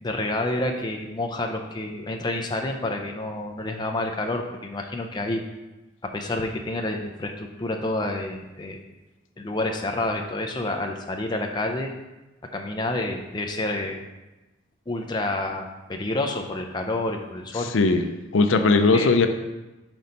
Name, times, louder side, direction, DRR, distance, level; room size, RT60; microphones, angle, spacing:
voice 1, 0.0-5.4 6.0-8.8 9.4-11.9 12.5-14.0 14.9-17.7 18.9-19.1, left 2 dB, 20° left, 3 dB, 0.5 m, -29 dB
voice 2, 17.7-18.0 18.3-19.3, left 3 dB, 70° left, 7 dB, 0.5 m, -18 dB
6.0 x 4.1 x 5.2 m, 1.0 s
head